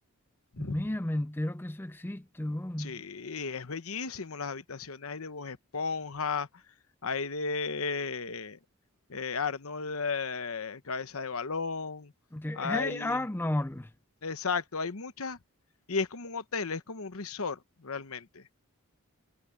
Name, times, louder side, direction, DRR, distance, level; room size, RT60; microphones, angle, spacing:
voice 1, 0.6-3.0 12.3-13.9, left 1 dB, 10° left, 0.4 m, -33 dB
voice 2, 2.8-6.6 7.0-8.6 9.1-12.1 12.5-13.2 14.2-15.4 15.9-18.5, left 4 dB, 75° left, 1.0 m, -34 dB
head